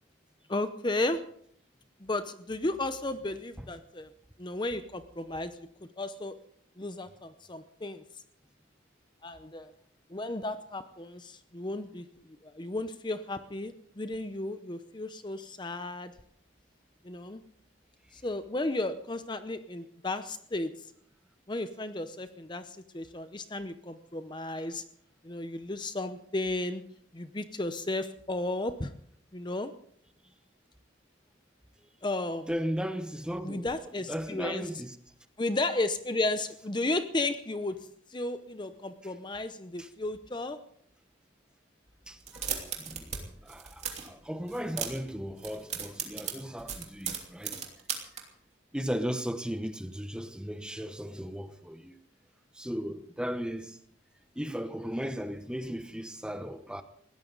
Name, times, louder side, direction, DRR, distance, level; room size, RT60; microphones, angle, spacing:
voice 1, 0.5-1.2 2.0-4.1 4.4-5.7 6.0-6.3 6.8-8.0 9.2-9.7 10.1-12.0 12.4-16.1 17.0-17.4 18.1-20.7 21.5-24.8 25.2-26.8 27.1-28.9 29.3-29.7 32.0-32.5 33.4-34.6 35.4-37.8 38.1-40.6, left 2 dB, 25° left, 0.8 m, -34 dB
voice 2, 32.5-33.7 34.1-34.9 39.8-39.9 42.1-42.4 42.8-43.1 43.4-47.6 48.7-52.0 52.6-53.8 54.4-56.8, equal, 5° right, 1.0 m, -36 dB
sound 1, 42.2-43.2 43.5-44.1 44.5-45.1 45.4-48.2, right 8 dB, 35° right, 3.0 m, -36 dB
21.0 x 17.0 x 4.0 m
head